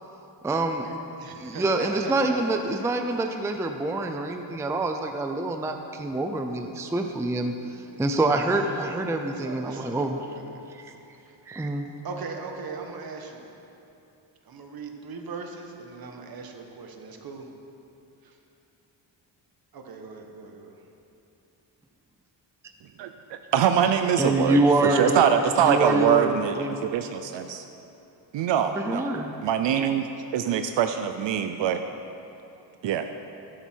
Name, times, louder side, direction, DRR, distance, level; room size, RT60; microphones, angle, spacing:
voice 1, 0.4-1.0 1.4-10.2 10.7-10.9 11.5-11.9 24.2-25.2 25.6-26.9 28.8-29.4, right 2 dB, 5° right, 5 dB, 0.4 m, -26 dB
voice 2, 1.2-2.4 2.8-2.9 7.9-10.6 11.2-11.7 12.0-13.5 14.4-17.5 18.2-18.4 19.7-20.8, right 4 dB, 50° right, 3 dB, 1.3 m, -40 dB
voice 3, 23.0-27.6 28.3-29.1 29.4-30.1 30.3-31.8 32.8-33.1, right 8 dB, 70° right, 8 dB, 0.6 m, -24 dB
13.0 x 11.0 x 4.5 m, 2.9 s
wide cardioid pair, 155°, 45 cm